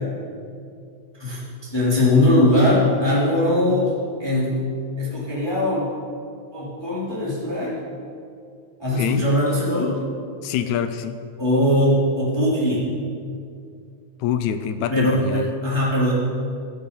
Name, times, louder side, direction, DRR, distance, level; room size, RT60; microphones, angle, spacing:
voice 1, 1.2-3.9 4.2-4.6 5.0-5.9 6.5-7.8 8.8-9.9 11.4-12.9 14.9-16.1, left 1 dB, 10° left, -7 dB, 2.9 m, -20 dB
voice 2, 10.4-11.2 14.2-15.5, left 9 dB, 80° left, 10 dB, 2.0 m, -25 dB
14.0 x 12.0 x 5.4 m, 2.4 s
omnidirectional pair, 3.3 m